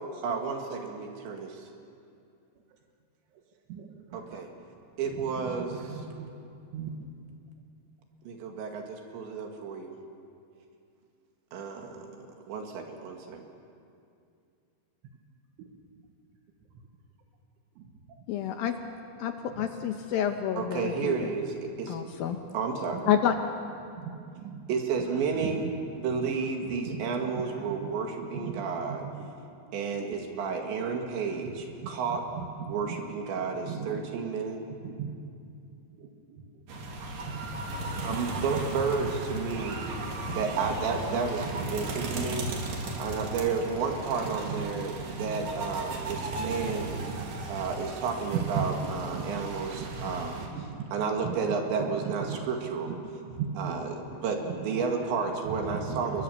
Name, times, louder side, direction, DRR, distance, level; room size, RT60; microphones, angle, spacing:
voice 1, 0.2-1.7 4.1-4.5 5.0-6.0 8.3-9.9 11.5-13.4 20.6-22.0 22.5-23.1 24.7-25.7 26.0-29.0 29.7-32.3 32.7-34.6 38.0-39.8 40.3-42.7 43.0-47.0 47.5-50.4 50.9-52.9 53.6-56.2, right 5 dB, 75° right, 4.1 m, -32 dB
voice 2, 3.7-4.4 5.8-6.3 6.7-6.9 24.0-24.6 26.9-27.6 28.4-28.7 32.7-33.0 33.6-34.1 34.8-35.1 36.0-36.1 37.3-37.4 38.5-38.6 39.9-40.0 40.3-40.4 44.5-44.8 45.1-45.5 46.1-46.2 46.9-47.4 48.4-49.3 49.8-50.8 51.2-51.3 52.0-52.4 52.9-53.0 53.4-53.7 54.1-54.9 55.5-56.2, right 6 dB, 90° right, 4.0 m, -37 dB
voice 3, 18.3-18.7 19.2-21.3 21.9-22.4 23.1-23.3, left 9 dB, 80° left, 2.1 m, -28 dB
sound 1, 36.7-50.5, right 2 dB, 50° right, 3.8 m, -36 dB
29.5 x 22.5 x 7.0 m
omnidirectional pair, 5.4 m